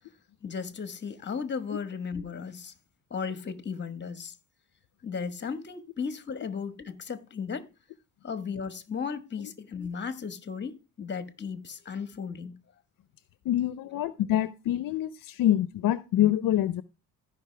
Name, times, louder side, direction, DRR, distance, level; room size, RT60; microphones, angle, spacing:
voice 1, 0.4-2.7 3.1-4.3 5.0-7.7 8.2-12.6, left 6 dB, 30° left, 1.3 m, -35 dB
voice 2, 13.4-16.8, left 12 dB, 65° left, 0.7 m, -26 dB
15.5 x 5.4 x 3.2 m
cardioid pair, 105°, 36 cm